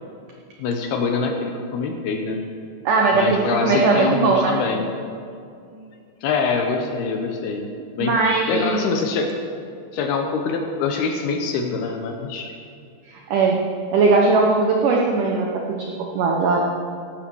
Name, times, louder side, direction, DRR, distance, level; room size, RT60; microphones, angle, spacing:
voice 1, 0.6-2.4 3.1-4.8 6.2-7.7 8.0-8.2 8.5-9.3 9.9-12.5, left 4 dB, 75° left, 3 dB, 2.5 m, -24 dB
voice 2, 2.9-4.6 5.7-5.8 8.0-8.9 13.1-13.6 13.9-16.6, right 4 dB, 85° right, 0 dB, 1.8 m, -19 dB
15.5 x 12.0 x 4.7 m, 2.4 s
omnidirectional pair, 5.3 m